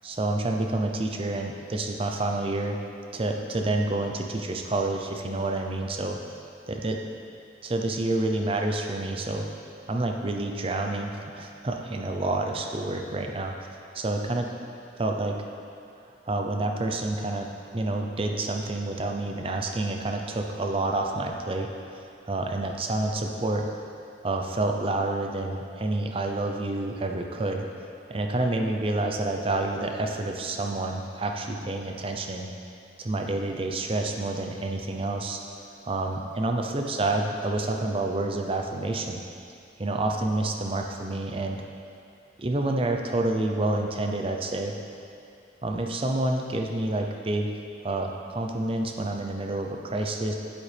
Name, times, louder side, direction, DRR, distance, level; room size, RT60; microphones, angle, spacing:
voice 1, 0.0-2.8 3.1-6.2 6.7-7.0 7.6-9.5 9.9-13.5 13.9-14.5 15.0-15.4 16.3-17.5 17.7-21.7 22.3-23.7 24.2-27.6 28.1-32.5 33.0-35.4 35.8-39.2 39.8-41.6 42.4-44.7 45.6-47.5 47.8-50.3, right 2 dB, 30° right, 3 dB, 0.5 m, -28 dB
8.4 x 7.6 x 3.4 m, 2.5 s
head